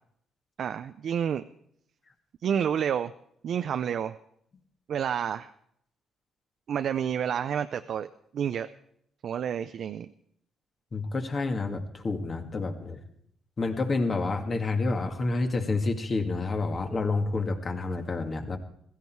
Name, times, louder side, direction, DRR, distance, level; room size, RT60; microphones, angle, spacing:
voice 1, 0.6-1.4 2.4-3.1 3.4-4.2 4.9-5.5 6.7-8.1 8.3-8.7 9.2-10.1, right 8 dB, 65° right, 9 dB, 0.6 m, -29 dB
voice 2, 10.9-13.0 13.6-18.6, left 3 dB, 35° left, 5 dB, 2.1 m, -29 dB
16.0 x 14.5 x 4.7 m, 0.69 s
cardioid pair, 90°, 0 cm